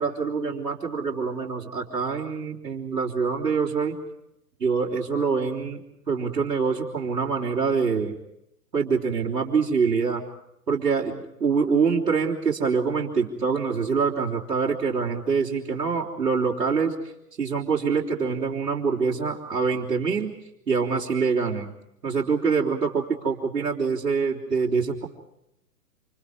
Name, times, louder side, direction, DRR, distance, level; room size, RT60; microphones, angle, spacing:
voice 1, 0.0-4.0 4.6-5.8 6.1-8.2 8.7-10.2 10.7-16.9 17.4-20.3 20.7-21.7 22.0-25.1, right 5 dB, 80° right, -5 dB, 4.0 m, -25 dB
28.5 x 28.0 x 4.9 m, 0.80 s
figure-of-eight pair, 120°, 47 cm